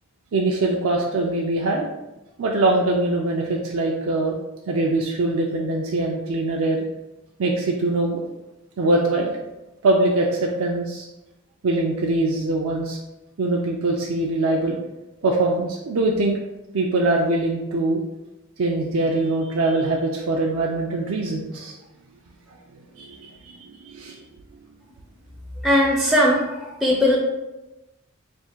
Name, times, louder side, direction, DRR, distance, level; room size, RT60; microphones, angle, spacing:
voice 1, 0.3-1.9 2.4-4.4 4.7-6.8 7.4-8.2 8.8-9.4 9.8-11.1 11.6-13.0 13.4-14.8 15.2-16.4 16.7-18.0 18.6-21.8 23.0-24.2, right 2 dB, 70° right, -1 dB, 0.4 m, -22 dB
voice 2, 25.6-27.2, left 1 dB, ahead, -4 dB, 0.4 m, -19 dB
3.5 x 2.4 x 4.4 m, 1.0 s
head